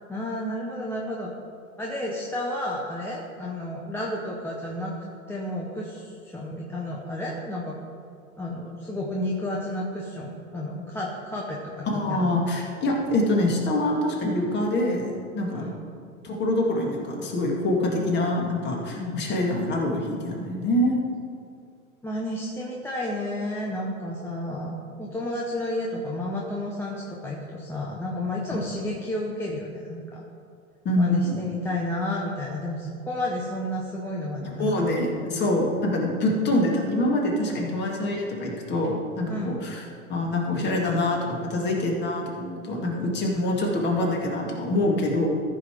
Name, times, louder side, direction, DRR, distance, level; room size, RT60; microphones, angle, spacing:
voice 1, 0.1-1.3 1.8-4.9 5.3-7.8 8.4-12.3 15.5-15.7 19.0-19.3 22.0-30.2 31.0-34.7 35.1-35.5 39.3-39.6, left 1 dB, 5° left, -3 dB, 0.6 m, -31 dB
voice 2, 11.9-15.7 16.2-21.0 30.8-31.4 34.6-39.8 40.1-45.3, left 1 dB, 25° left, -1 dB, 1.9 m, -25 dB
14.0 x 5.6 x 4.7 m, 2.3 s
hypercardioid pair, 130°, 43 cm